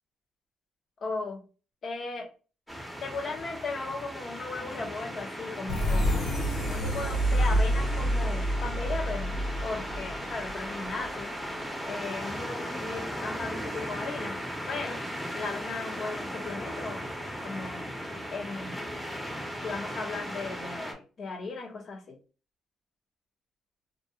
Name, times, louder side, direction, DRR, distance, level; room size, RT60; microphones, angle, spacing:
voice 1, 1.0-1.4 1.8-2.3 3.0-6.4 6.7-11.3 11.8-14.4 14.7-15.0 15.3-17.1 17.4-17.9 18.3-18.9 19.6-22.2, left 3 dB, 55° left, 0.7 m, -37 dB
sound 1, 2.7-20.9, equal, 5° left, 0.7 m, -37 dB
sound 2, 5.7-11.2, equal, 80° left, 1.1 m, -28 dB
2.4 x 2.2 x 2.7 m
cardioid pair, 90°, 0 cm